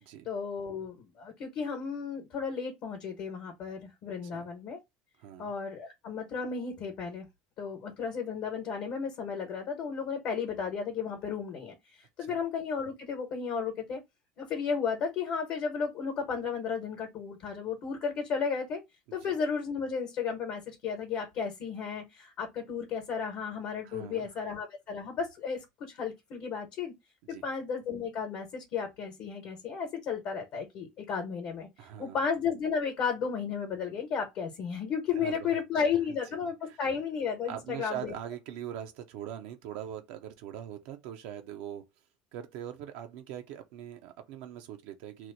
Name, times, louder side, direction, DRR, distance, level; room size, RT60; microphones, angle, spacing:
voice 1, 0.2-4.8 5.4-7.3 7.6-14.0 14.4-18.8 19.1-26.9 27.3-38.1, left 6 dB, 55° left, 1.0 m, -34 dB
voice 2, 5.2-5.5 12.3-12.4 19.1-19.3 23.8-24.3 27.2-27.5 31.8-32.2 35.2-36.2 36.7-36.8 37.5-41.8 42.3-45.3, right 10 dB, 75° right, 0.6 m, -42 dB
3.0 x 2.0 x 3.8 m
supercardioid pair, 130°, 3 cm